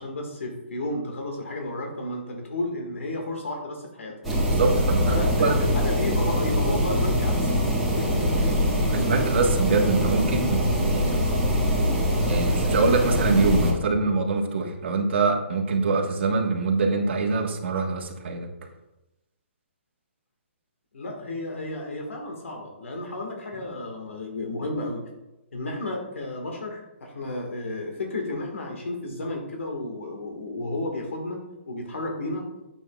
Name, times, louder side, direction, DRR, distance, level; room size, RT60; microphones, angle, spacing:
voice 1, 0.0-4.1 5.1-7.6 8.0-8.5 20.9-25.0 25.5-32.5, left 2 dB, 80° left, 2 dB, 1.7 m, -32 dB
sound 1, 4.2-13.7, equal, ahead, 1.8 m, -23 dB
voice 2, 4.5-5.5 8.9-11.2 12.2-18.5, right 4 dB, 60° right, 1 dB, 1.4 m, -24 dB
9.1 x 7.4 x 2.3 m, 0.98 s
hypercardioid pair, 155°, 7 cm